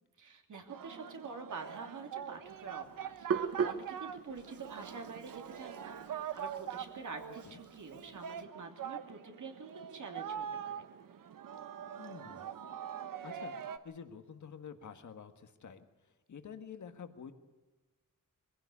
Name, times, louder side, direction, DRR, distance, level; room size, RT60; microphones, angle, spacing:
voice 1, 0.2-10.8, right 4 dB, 65° right, 3 dB, 2.9 m, -47 dB
Singing, 0.7-13.8, right 8 dB, 85° right, 1.1 m, -44 dB
Hands, 2.5-8.4, right 6 dB, 45° right, 1.0 m, -40 dB
voice 2, 12.0-12.4 13.2-17.3, left 7 dB, 65° left, 7 dB, 1.6 m, -49 dB
22.5 x 16.0 x 8.4 m, 1.2 s
wide cardioid pair, 130°, 32 cm